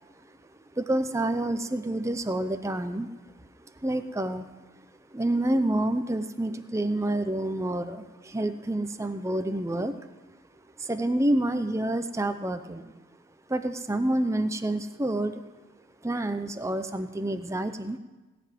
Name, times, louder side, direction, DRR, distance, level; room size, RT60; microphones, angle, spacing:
voice 1, 0.8-3.1 3.8-4.4 5.1-9.9 10.8-12.9 13.5-15.3 16.0-18.0, right 1 dB, 15° right, 8 dB, 0.6 m, -28 dB
18.0 x 6.1 x 9.2 m, 1.2 s
head